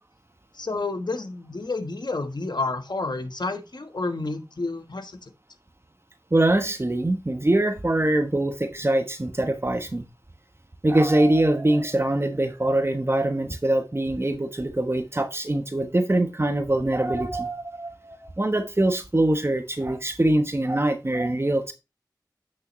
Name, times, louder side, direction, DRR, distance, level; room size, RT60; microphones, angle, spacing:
voice 1, 0.5-5.3, left 3 dB, 70° left, 1.2 m, -30 dB
voice 2, 6.3-10.1 10.8-21.7, right 1 dB, 35° right, 1.0 m, -23 dB
8.6 x 6.4 x 3.1 m
wide cardioid pair, 45°, 8 cm